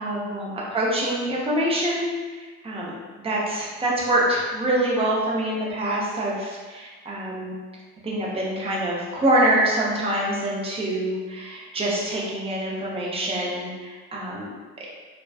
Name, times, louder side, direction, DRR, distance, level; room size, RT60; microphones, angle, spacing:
voice 1, 0.0-2.9 3.2-7.6 8.0-14.9, right 1 dB, 15° right, -4 dB, 0.6 m, -25 dB
2.3 x 2.2 x 2.4 m, 1.4 s
figure-of-eight pair, 45°, 47 cm